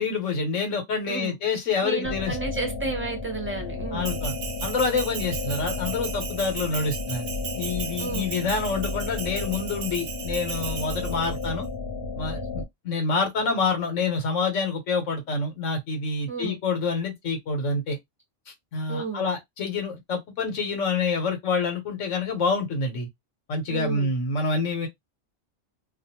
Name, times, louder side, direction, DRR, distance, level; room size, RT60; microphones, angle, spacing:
voice 1, 0.0-2.4 3.9-4.3 4.6-7.3 7.5-11.7 12.2-18.0 18.7-23.1 23.5-24.9, left 4 dB, 90° left, 1.3 m, -27 dB
voice 2, 1.1-1.4 1.8-4.2 8.0-8.3 16.3-16.6 18.9-19.3 23.7-24.1, right 3 dB, 10° right, 0.7 m, -32 dB
sound 1, 2.0-12.6, left 3 dB, 55° left, 0.9 m, -33 dB
Bell, 4.0-11.5, right 7 dB, 70° right, 0.9 m, -36 dB
2.5 x 2.4 x 2.8 m
omnidirectional pair, 1.2 m